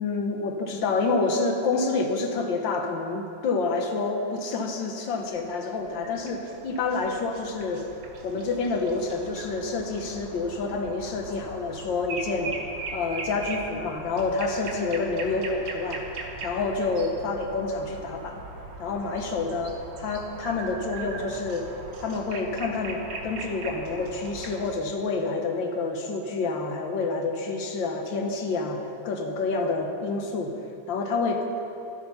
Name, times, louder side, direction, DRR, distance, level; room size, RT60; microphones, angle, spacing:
voice 1, 0.0-7.9 8.2-12.5 12.9-16.0 16.4-18.4 18.8-21.7 22.0-30.5 30.9-31.5, left 3 dB, 65° left, 3 dB, 1.6 m, -28 dB
sound 1, 5.3-24.7, right 2 dB, 75° right, 1.9 m, -39 dB
12.0 x 8.5 x 5.5 m, 2.7 s
omnidirectional pair, 2.3 m